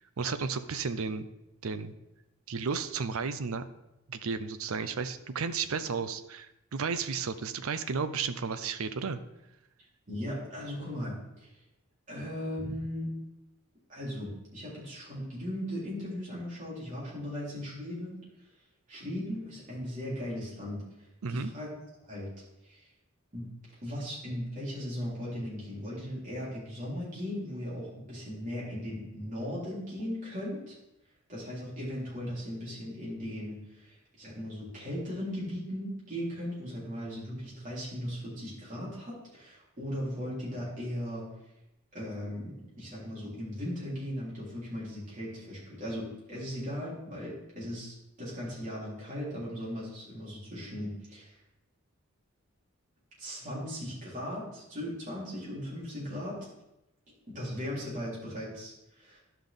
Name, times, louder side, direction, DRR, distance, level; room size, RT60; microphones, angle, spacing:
voice 1, 0.2-1.3 1.6-1.9 2.5-3.6 4.1-9.2 12.6-12.8 21.2-21.5, right 5 dB, 75° right, 11 dB, 0.6 m, -33 dB
voice 2, 10.1-11.5 12.1-13.1 13.9-18.2 18.9-20.8 21.3-21.7 22.1-22.3 22.6-22.8 23.3-23.5 23.8-30.8 31.3-41.2 41.9-51.3 53.2-56.4 57.3-59.2, equal, 35° right, -7 dB, 3.6 m, -38 dB
11.5 x 5.7 x 3.6 m, 0.91 s
head